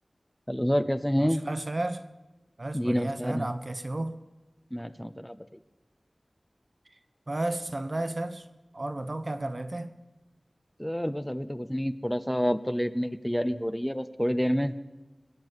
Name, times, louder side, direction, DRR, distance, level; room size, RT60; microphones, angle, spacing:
voice 1, 0.5-1.4 2.7-3.5 4.7-5.4 10.8-14.7, equal, 10° left, 0.8 m, -28 dB
voice 2, 1.2-2.0 2.6-4.2 7.3-8.5 8.7-9.9, right 2 dB, 55° right, 1.1 m, -33 dB
19.5 x 7.5 x 9.7 m
wide cardioid pair, 40°, 0 cm